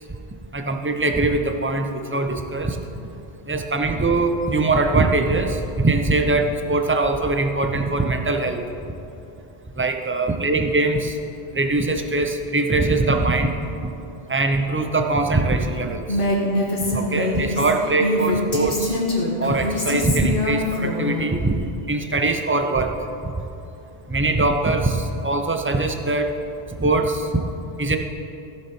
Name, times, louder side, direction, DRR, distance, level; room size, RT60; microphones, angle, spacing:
voice 1, 0.5-2.8 3.5-8.7 9.8-11.2 11.5-13.9 14.3-16.2 16.9-19.0 19.4-21.6 21.9-22.9 24.1-26.3 26.8-27.3 27.8-28.0, right 2 dB, 15° right, 5 dB, 0.4 m, -22 dB
Female speech woman speaking, 16.1-21.2, left 1 dB, 55° left, 1.7 m, -24 dB
15.0 x 6.6 x 4.4 m, 2.8 s
omnidirectional pair, 1.1 m